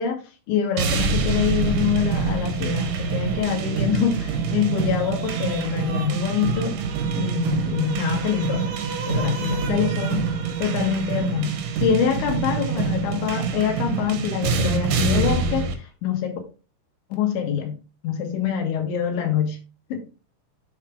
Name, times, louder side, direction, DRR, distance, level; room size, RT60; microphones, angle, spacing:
voice 1, 0.0-6.8 7.2-8.8 9.1-10.3 10.6-16.4 17.1-17.8 18.0-19.6 19.9-20.1, left 8 dB, 80° left, 4 dB, 3.9 m, -25 dB
sound 1, 0.8-15.7, right 5 dB, 80° right, 1.8 m, -25 dB
8.3 x 3.5 x 4.7 m, 0.33 s
omnidirectional pair, 5.2 m